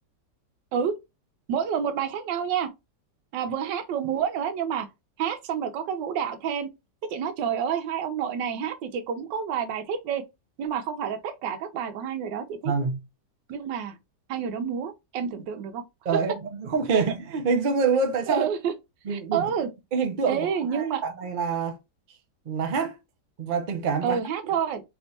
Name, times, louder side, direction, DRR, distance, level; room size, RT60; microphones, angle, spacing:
voice 1, 1.5-2.7 3.3-4.9 5.2-6.7 7.1-10.3 10.6-12.7 13.5-14.0 14.3-15.8 16.9-17.0 18.3-18.7 19.1-19.7 20.3-21.0 24.0-24.8, right 8 dB, 90° right, 1.4 m, -28 dB
voice 2, 12.6-13.0 16.0-18.5 19.0-19.5 19.9-21.8 22.5-22.9 23.4-24.2, right 5 dB, 70° right, 0.4 m, -26 dB
3.4 x 2.9 x 2.7 m
omnidirectional pair, 1.9 m